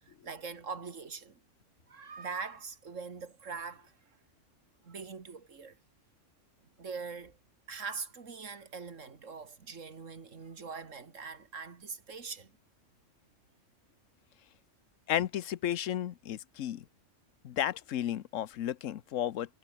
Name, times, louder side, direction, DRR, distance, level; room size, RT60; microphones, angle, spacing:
voice 1, 0.0-1.4 1.9-3.9 4.8-5.8 6.8-7.4 7.7-12.5, right 5 dB, 85° right, 2.4 m, -42 dB
voice 2, 15.1-16.8 17.4-19.6, left 11 dB, 85° left, 1.1 m, -33 dB
omnidirectional pair, 1.3 m